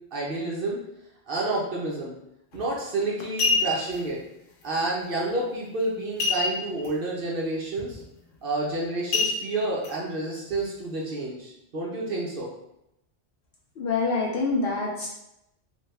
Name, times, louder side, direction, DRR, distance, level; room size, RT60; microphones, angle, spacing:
voice 1, 0.1-0.8 1.3-2.2 2.5-4.2 4.6-8.0 8.4-12.5, right 2 dB, 55° right, -4 dB, 0.8 m, -29 dB
sound 1, 2.5-2.7 3.2-4.0 6.2-6.9 7.2-7.3 7.8-8.0 9.1-9.9 10.5-10.6, left 4 dB, 85° left, 1.0 m, -26 dB
voice 2, 13.8-15.1, left 3 dB, 60° left, -3 dB, 0.7 m, -26 dB
3.3 x 2.2 x 3.1 m, 0.84 s
omnidirectional pair, 1.2 m